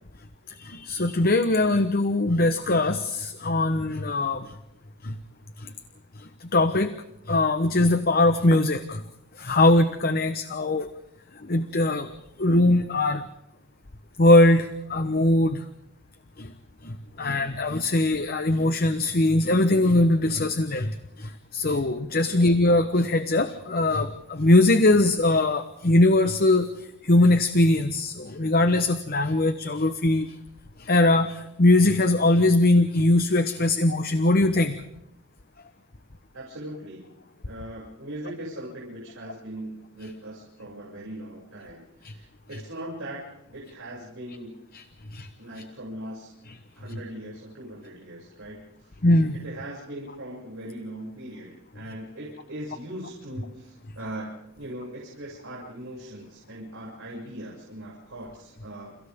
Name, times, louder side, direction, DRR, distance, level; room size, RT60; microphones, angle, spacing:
voice 1, 0.5-4.5 5.0-5.1 5.6-5.7 6.2-6.9 7.3-9.0 9.4-10.9 11.4-12.1 12.4-13.2 14.2-15.6 16.4-16.5 16.8-26.7 27.0-30.3 30.8-34.8 42.0-42.1 44.7-44.8 45.1-45.3 49.0-49.4, left 2 dB, 45° left, 9 dB, 1.1 m, -21 dB
voice 2, 36.3-44.6 45.4-46.3 46.7-49.0 49.3-59.0, right 1 dB, 70° right, -5 dB, 6.9 m, -40 dB
29.5 x 29.5 x 3.7 m, 0.82 s
head